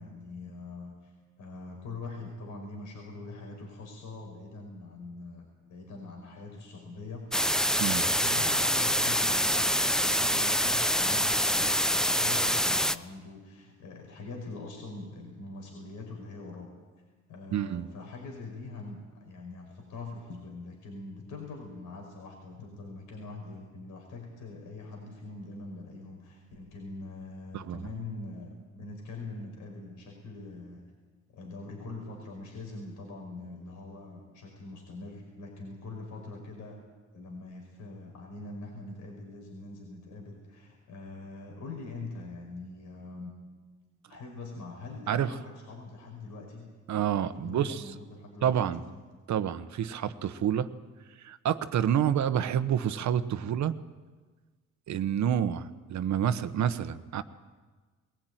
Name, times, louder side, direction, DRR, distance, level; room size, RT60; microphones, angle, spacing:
voice 1, 0.0-16.7 17.3-30.8 31.3-36.8 37.1-43.3 44.1-46.7 47.4-49.0, left 3 dB, 80° left, 1 dB, 5.3 m, -43 dB
sound 1, 7.3-13.0, equal, ahead, 0.7 m, -26 dB
voice 2, 17.5-17.9 27.5-27.8 45.1-45.3 46.9-47.8 48.4-48.8 49.3-50.7 51.2-53.7 54.9-57.2, right 9 dB, 65° right, 12 dB, 1.1 m, -28 dB
21.5 x 16.5 x 9.2 m, 1.4 s
cardioid pair, 90°, 30 cm